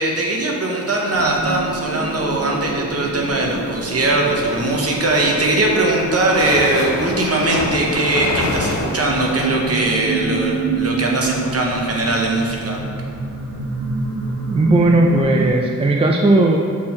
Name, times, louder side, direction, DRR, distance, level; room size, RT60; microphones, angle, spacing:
voice 1, 0.0-12.8, right 2 dB, 50° right, -1 dB, 0.9 m, -20 dB
sound 1, 1.1-15.5, right 3 dB, 80° right, 1.2 m, -27 dB
sound 2, 4.8-9.9, left 3 dB, 60° left, 0.6 m, -27 dB
voice 2, 14.5-16.6, right 2 dB, 20° right, 1 dB, 0.3 m, -15 dB
6.1 x 4.4 x 4.3 m, 2.2 s
wide cardioid pair, 150°, 32 cm